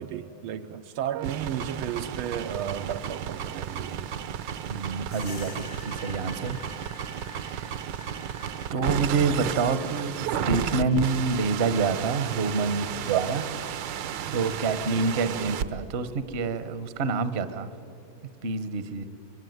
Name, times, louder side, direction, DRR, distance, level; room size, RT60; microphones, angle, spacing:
voice 1, 0.0-4.1, right 9 dB, 85° right, 1.7 m, -33 dB
sound 1, 1.1-15.7, right 9 dB, 65° right, 1.3 m, -33 dB
voice 2, 4.7-6.6 7.3-7.8 8.7-10.1 10.5-13.5 14.3-17.7 18.4-19.0, right 4 dB, 45° right, 0.9 m, -27 dB
sound 2, 5.1-13.4, left 4 dB, 70° left, 2.9 m, -50 dB
24.0 x 23.0 x 9.4 m
omnidirectional pair, 2.3 m